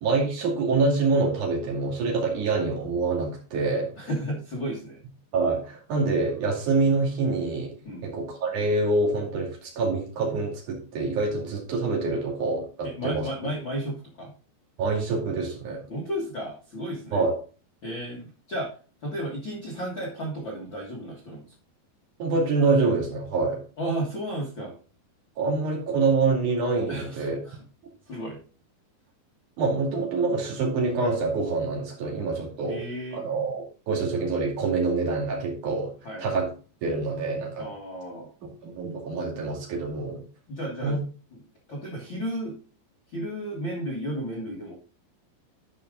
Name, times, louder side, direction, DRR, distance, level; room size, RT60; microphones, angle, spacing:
voice 1, 0.0-3.9 5.3-7.7 8.0-13.3 14.8-15.8 17.1-17.3 22.2-23.6 25.4-27.4 29.6-32.8 33.1-35.9 36.2-36.5 36.8-37.7 38.4-40.2 40.8-41.0, right 3 dB, 50° right, -1 dB, 3.4 m, -26 dB
voice 2, 4.0-5.0 7.8-8.1 12.8-14.3 15.9-17.2 17.8-18.7 19.0-21.4 23.8-24.7 26.9-27.6 28.1-28.4 32.6-33.3 36.0-36.2 37.6-38.3 40.5-41.0 41.3-41.4 41.7-42.5 43.1-44.7, right 1 dB, 75° left, -2 dB, 1.1 m, -33 dB
11.5 x 5.1 x 3.7 m, 0.37 s
omnidirectional pair, 5.3 m